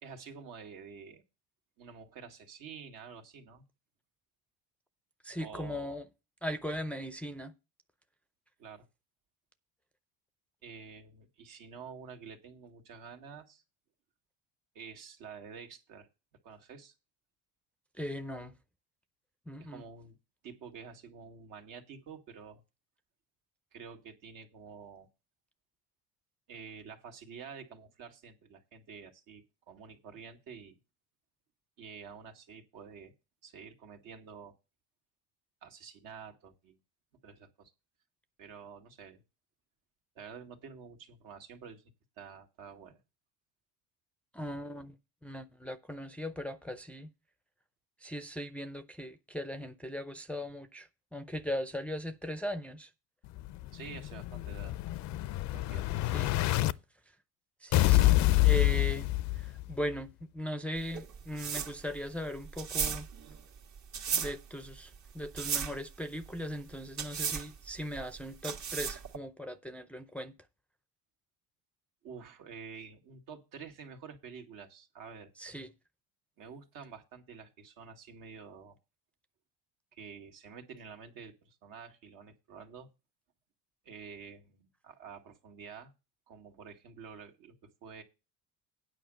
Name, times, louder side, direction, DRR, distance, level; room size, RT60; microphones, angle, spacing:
voice 1, 0.0-1.2 1.8-3.6 5.4-6.0 8.6-8.9 10.6-13.6 14.7-16.1 16.4-16.9 19.6-20.1 20.4-22.6 23.7-25.1 26.5-30.8 31.8-33.1 33.4-34.5 35.6-36.8 37.2-37.7 38.4-39.2 40.2-41.8 42.2-43.0 53.7-54.8 55.5-56.0 72.0-75.3 76.4-78.8 79.9-82.9 83.9-85.9 86.3-88.0, right 6 dB, 70° right, 2.0 m, -49 dB
voice 2, 5.2-6.1 6.4-7.5 18.0-18.5 19.5-19.8 44.3-45.0 45.2-47.1 48.0-52.9 56.1-56.3 57.6-58.2 58.4-59.1 59.3-60.1 60.3-63.1 64.1-70.3 75.4-75.7, equal, 5° left, 0.5 m, -39 dB
Explosion, 53.4-56.7 57.7-59.7, left 16 dB, 55° left, 0.5 m, -27 dB
sound 1, 60.8-69.2, right 7 dB, 50° right, 1.5 m, -36 dB
9.2 x 5.1 x 7.6 m
cardioid pair, 115°, 35 cm